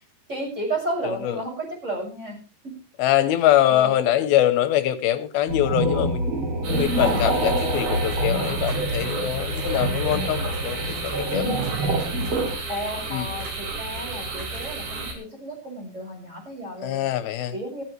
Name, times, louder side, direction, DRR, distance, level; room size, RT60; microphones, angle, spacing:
voice 1, 0.3-2.4 2.6-2.7 3.7-3.9 6.9-7.2 12.7-17.0 17.5-17.8, right 1 dB, 20° right, 6.9 m, -32 dB
voice 2, 1.0-1.4 3.0-6.3 6.7-11.5 13.1-13.3 16.8-17.5, left 12 dB, 85° left, 2.9 m, -23 dB
sound 1, 5.5-12.6, right 1 dB, 40° right, 3.0 m, -26 dB
sound 2, 6.6-15.1, right 3 dB, 75° right, 5.0 m, -33 dB
16.5 x 14.5 x 3.3 m
omnidirectional pair, 4.2 m